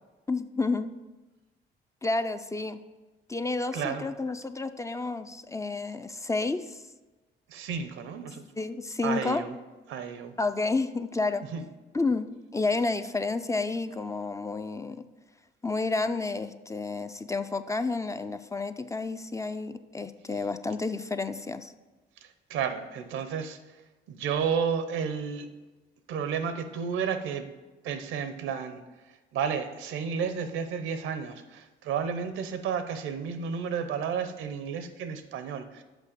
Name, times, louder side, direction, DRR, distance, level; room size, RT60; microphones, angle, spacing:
voice 1, 0.3-0.9 2.0-2.8 3.3-6.8 8.5-9.4 10.4-11.5 11.9-15.0 15.6-21.7, left 3 dB, 15° left, 10 dB, 0.4 m, -30 dB
voice 2, 3.7-4.1 7.5-8.4 9.0-9.6 9.9-10.3 11.5-11.6 22.5-23.6 24.1-25.5 26.1-27.5 27.8-28.8 29.3-35.8, right 7 dB, 90° right, 10 dB, 0.7 m, -32 dB
6.2 x 5.2 x 6.6 m, 1.2 s
cardioid pair, 90°, 20 cm